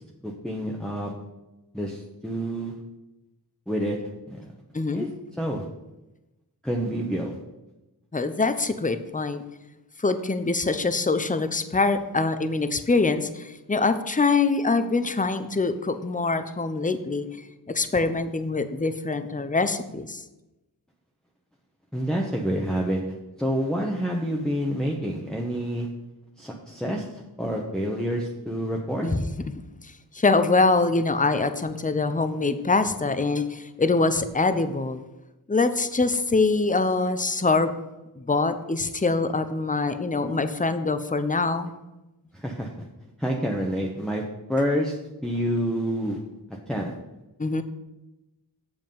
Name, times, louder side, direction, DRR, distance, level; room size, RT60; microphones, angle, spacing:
voice 1, 0.2-1.1 1.7-2.8 3.7-4.0 4.3-4.4 4.9-5.1 5.4-5.7 6.6-7.4 21.9-25.9 26.4-29.1 42.3-42.9 43.2-44.2 44.5-45.0 45.2-46.2 46.7-46.9, equal, ahead, -2 dB, 1.0 m, -28 dB
voice 2, 8.1-9.4 10.0-20.2 29.0-29.2 29.8-35.0 35.5-37.7 38.2-41.7 47.4-47.6, left 3 dB, 20° left, 10 dB, 0.7 m, -24 dB
7.9 x 7.1 x 5.5 m, 1.0 s
wide cardioid pair, 60°, 39 cm